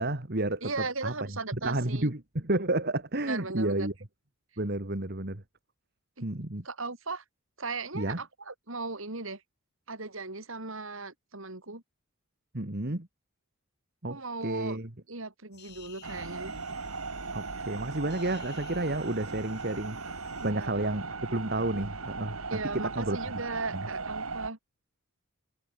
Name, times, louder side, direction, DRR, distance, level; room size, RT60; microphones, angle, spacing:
voice 1, 0.0-1.1 1.6-3.9 4.6-5.4 6.2-6.7 7.9-8.2 12.5-13.1 14.0-14.9 17.3-20.1 20.4-22.4 22.7-23.2 23.7-23.8, right 2 dB, 50° right, 2.0 m, -31 dB
voice 2, 0.6-2.1 3.2-3.9 6.2-6.3 6.6-7.2 7.6-9.4 9.9-11.8 14.1-14.8 15.1-16.5 20.4-20.8 22.5-24.6, right 3 dB, 70° right, 3.5 m, -37 dB
sound 1, 15.5-20.5, left 8 dB, 50° left, 5.0 m, -55 dB
sound 2, 16.0-24.5, right 4 dB, 85° right, 2.6 m, -38 dB
head